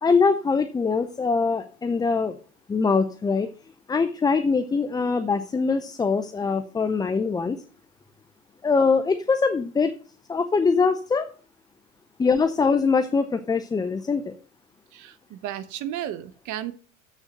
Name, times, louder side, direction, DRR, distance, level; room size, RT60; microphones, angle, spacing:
voice 1, 0.0-2.3 2.7-3.5 3.9-7.6 8.6-9.9 10.3-11.3 12.2-14.3, left 4 dB, 10° left, 9 dB, 0.5 m, -23 dB
voice 2, 14.9-16.7, right 11 dB, 45° right, 14 dB, 1.1 m, -33 dB
7.4 x 6.5 x 6.4 m, 0.42 s
hypercardioid pair, 100°, 40 cm